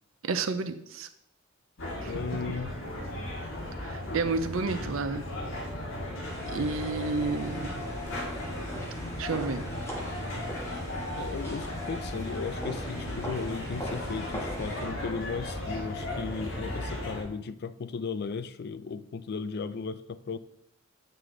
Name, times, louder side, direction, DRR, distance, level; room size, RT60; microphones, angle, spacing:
voice 1, 0.2-1.1 2.0-2.2 3.8-5.3 6.5-7.7 9.2-9.7, right 4 dB, 75° right, 0.6 m, -31 dB
sound 1, 1.8-17.2, left 1 dB, 65° left, 1.7 m, -36 dB
voice 2, 2.0-2.8 11.2-20.4, left 5 dB, 50° left, 0.4 m, -36 dB
sound 2, 6.2-14.8, equal, 15° left, 1.4 m, -41 dB
7.6 x 4.9 x 3.8 m
head